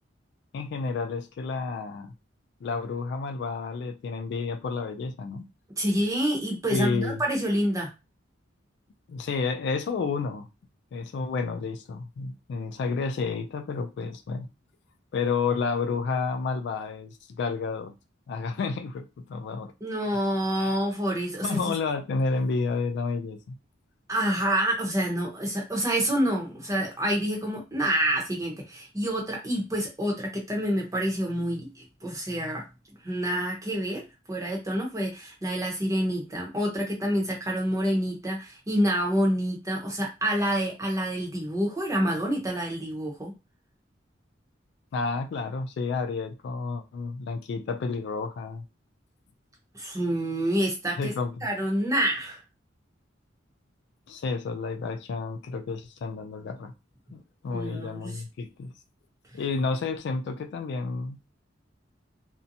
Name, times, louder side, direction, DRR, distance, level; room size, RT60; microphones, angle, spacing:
voice 1, 0.5-2.1 2.6-5.5 6.7-7.2 9.1-10.5 10.9-14.5 15.1-17.9 18.3-19.7 20.6-20.8 21.4-23.6 44.9-48.6 51.0-51.4 54.1-56.7 57.1-58.7 59.3-61.2, left 4 dB, 60° left, 0.3 m, -30 dB
voice 2, 5.8-7.9 19.8-21.7 24.1-32.6 33.0-34.0 34.3-43.3 49.7-51.1 51.4-52.4 57.5-58.2, equal, 15° right, 0.8 m, -27 dB
2.7 x 2.1 x 2.6 m
head